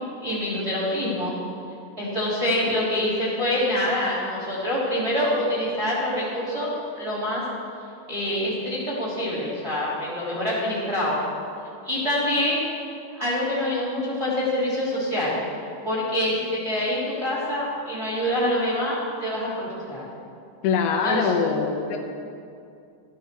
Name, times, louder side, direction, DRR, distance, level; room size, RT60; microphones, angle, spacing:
voice 1, 0.2-1.3 2.0-7.4 8.1-11.2 11.8-12.7 13.1-15.4 15.8-20.0 21.0-21.3, left 1 dB, 15° right, -7 dB, 2.7 m, -25 dB
voice 2, 20.6-22.0, left 5 dB, 85° left, 2 dB, 3.3 m, -23 dB
13.5 x 12.5 x 4.6 m, 2.5 s
omnidirectional pair, 5.2 m